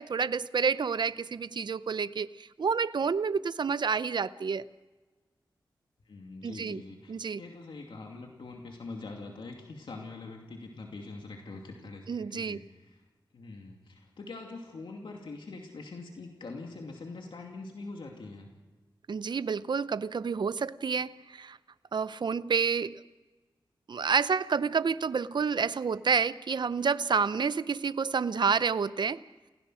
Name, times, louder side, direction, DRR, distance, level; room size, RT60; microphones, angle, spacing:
voice 1, 0.0-4.7 6.4-6.8 7.1-7.4 12.1-12.6 19.1-21.6 21.9-22.9 23.9-29.2, right 5 dB, 60° right, 15 dB, 0.6 m, -29 dB
voice 2, 6.1-13.0 13.3-18.5, left 3 dB, 80° left, 1 dB, 2.5 m, -44 dB
29.5 x 16.5 x 6.3 m, 1.3 s
wide cardioid pair, 80°, 8 cm